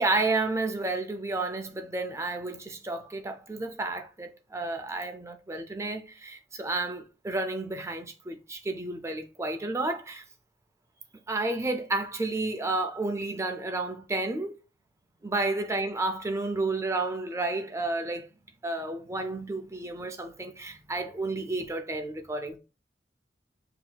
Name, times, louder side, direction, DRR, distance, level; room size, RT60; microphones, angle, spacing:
voice 1, 0.0-10.2 11.3-14.6 15.2-18.3 18.6-22.6, right 2 dB, 15° right, 0.5 m, -31 dB
6.0 x 2.8 x 2.3 m
head